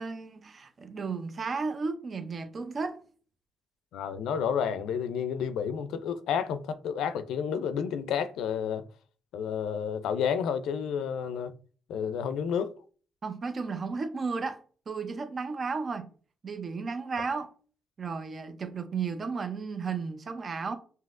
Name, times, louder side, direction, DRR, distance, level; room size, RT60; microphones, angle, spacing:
voice 1, 0.0-3.0 13.2-16.1 16.4-17.5 18.0-20.8, right 4 dB, 40° right, 0.5 m, -34 dB
voice 2, 3.9-8.9 9.3-11.5 11.9-12.7, left 7 dB, 85° left, 0.4 m, -30 dB
5.6 x 2.7 x 2.4 m
cardioid pair, 90°, 0 cm